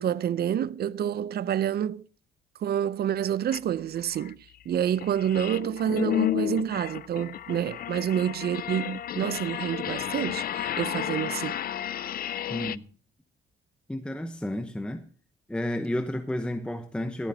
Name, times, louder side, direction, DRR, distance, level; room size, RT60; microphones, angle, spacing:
voice 1, 0.0-2.0 2.6-4.4 4.7-11.6, right 10 dB, 55° right, 0.5 m, -28 dB
sound 1, 3.5-3.6 4.1-12.8, left 11 dB, 50° left, 0.4 m, -32 dB
voice 2, 12.5-12.8 13.9-15.0 15.5-17.3, left 1 dB, 5° left, 0.9 m, -31 dB
17.0 x 11.5 x 2.8 m
cardioid pair, 90°, 20 cm